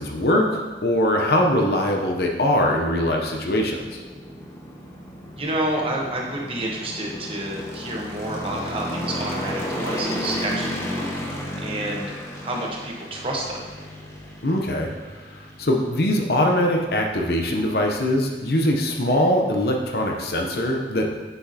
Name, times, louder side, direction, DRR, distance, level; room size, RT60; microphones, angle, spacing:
voice 1, 0.0-4.0 14.4-14.9 15.2-21.1, left 1 dB, 55° left, 1 dB, 0.7 m, -22 dB
sound 1, 0.7-20.0, equal, 15° left, 0.7 m, -35 dB
voice 2, 5.4-11.1 11.6-12.1 12.4-13.6, right 1 dB, 30° right, -2 dB, 1.1 m, -29 dB
9.2 x 6.0 x 2.8 m, 1.3 s
head